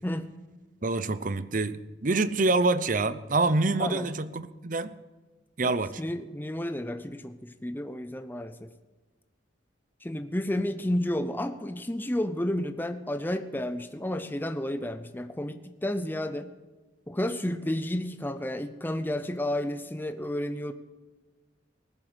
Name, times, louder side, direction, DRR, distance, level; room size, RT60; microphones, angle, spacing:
voice 1, 0.0-0.3 3.8-4.1 5.6-8.7 10.0-16.5 17.1-20.7, left 1 dB, 10° left, 0.6 m, -31 dB
voice 2, 0.8-4.9 5.6-6.0, right 3 dB, 45° right, 0.7 m, -26 dB
19.0 x 7.7 x 8.0 m
head